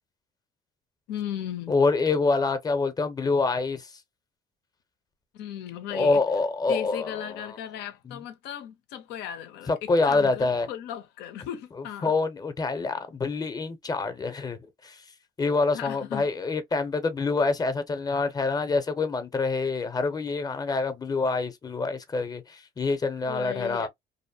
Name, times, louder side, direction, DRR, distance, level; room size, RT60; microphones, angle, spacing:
voice 1, 1.1-1.7 5.3-6.2 6.7-9.7 10.0-12.1 15.7-16.3 23.3-23.9, left 10 dB, 85° left, 0.7 m, -36 dB
voice 2, 1.7-3.9 5.9-7.6 8.0-8.2 9.7-10.7 11.8-15.0 15.4-23.9, left 3 dB, 20° left, 0.7 m, -26 dB
2.7 x 2.1 x 2.6 m
cardioid pair, 110°, 17 cm